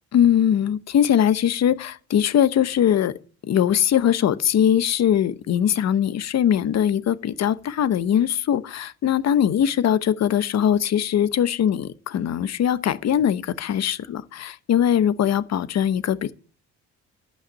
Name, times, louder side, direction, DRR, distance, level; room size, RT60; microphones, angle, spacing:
voice 1, 0.1-3.1 3.4-16.3, left 9 dB, 60° left, 0.9 m, -21 dB
12.0 x 5.7 x 8.7 m
cardioid pair, 90°, 30 cm